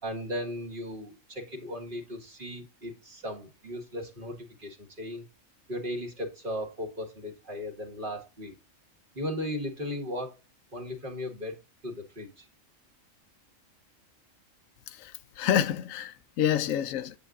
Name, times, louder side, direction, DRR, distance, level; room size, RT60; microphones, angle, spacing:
voice 1, 0.0-5.2 5.7-8.5 9.1-10.3 10.7-11.6 11.8-12.5, left 1 dB, 40° right, 1.8 m, -36 dB
voice 2, 14.9-17.1, left 10 dB, 80° left, 1.0 m, -28 dB
8.0 x 7.8 x 2.4 m
omnidirectional pair, 1.4 m